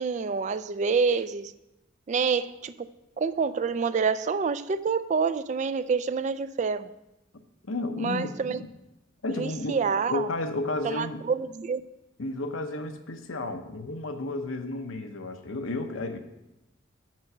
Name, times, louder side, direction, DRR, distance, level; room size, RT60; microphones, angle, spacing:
voice 1, 0.0-1.5 2.1-2.9 3.2-6.9 8.0-8.6 9.4-10.3 10.8-11.8, right 5 dB, 35° right, 0.3 m, -27 dB
voice 2, 7.6-8.7 9.2-9.8 10.1-11.2 12.2-16.2, left 2 dB, 85° left, 0.9 m, -32 dB
7.5 x 6.1 x 6.1 m
head